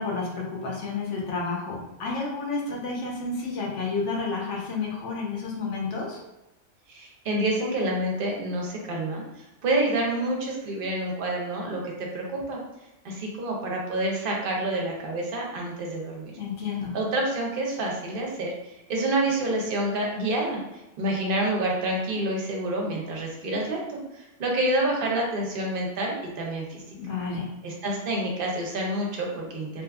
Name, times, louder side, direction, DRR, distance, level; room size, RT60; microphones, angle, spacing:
voice 1, 0.0-6.2 16.4-16.9 27.0-27.5, left 4 dB, 70° left, -2 dB, 0.9 m, -30 dB
voice 2, 6.9-9.2 9.6-12.6 13.0-16.3 16.9-20.6 21.0-26.8 27.6-29.8, right 1 dB, 55° right, -1 dB, 0.7 m, -28 dB
2.8 x 2.3 x 2.3 m, 0.94 s
omnidirectional pair, 1.3 m